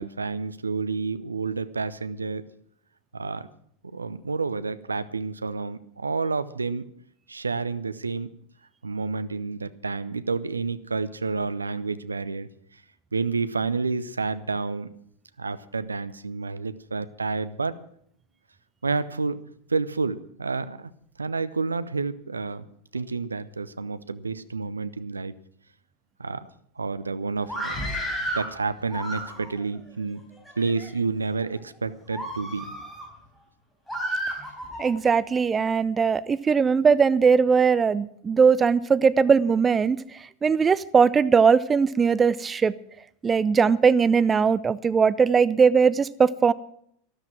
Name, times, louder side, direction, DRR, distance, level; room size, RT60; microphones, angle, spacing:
voice 1, 0.0-2.4 3.1-3.5 3.8-6.8 7.3-8.3 8.8-12.5 13.1-14.9 15.4-17.8 18.8-19.4 19.7-20.9 21.2-22.6 22.9-25.3 26.2-26.5 26.8-27.9 28.2-30.2 30.6-32.7, right 4 dB, 80° right, 14 dB, 0.7 m, -29 dB
Screaming, 27.4-28.5 28.9-29.6 30.3-30.9 31.4-31.6 32.1-33.1 33.9-34.9, equal, 5° left, 4.2 m, -32 dB
voice 2, 34.8-40.0 40.4-42.7 43.2-46.5, right 6 dB, 20° right, 17 dB, 0.5 m, -20 dB
13.0 x 13.0 x 6.1 m, 0.67 s
figure-of-eight pair, 85°, 0 cm